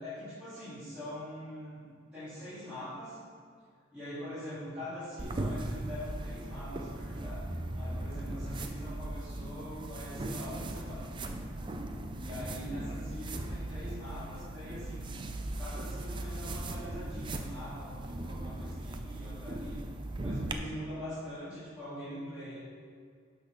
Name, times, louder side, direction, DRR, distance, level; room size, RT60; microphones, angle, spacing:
voice 1, 0.0-3.2 3.9-7.4 7.7-11.1 12.2-15.1 15.6-19.8 20.2-22.6, left 1 dB, 5° right, -16 dB, 2.4 m, -43 dB
sound 1, 5.2-20.5, right 1 dB, 25° right, 0.4 m, -38 dB
11.5 x 4.0 x 5.2 m, 2.1 s
head